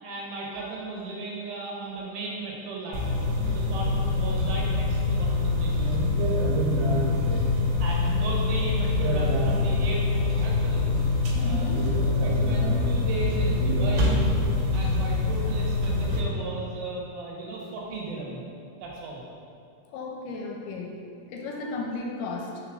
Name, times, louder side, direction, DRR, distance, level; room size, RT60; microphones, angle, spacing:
voice 1, 0.0-3.2 3.5-6.0 7.6-10.9 11.1-11.7 12.2-14.2 14.7-18.4 18.8-19.2, right 3 dB, 75° right, -3 dB, 2.7 m, -36 dB
sound 1, 2.9-16.2, left 2 dB, 90° right, 3.1 m, -24 dB
voice 2, 11.3-11.9 19.9-21.0 21.3-22.6, left 3 dB, 85° left, 0 dB, 2.5 m, -34 dB
6.0 x 3.9 x 6.2 m, 2.4 s
omnidirectional pair, 4.6 m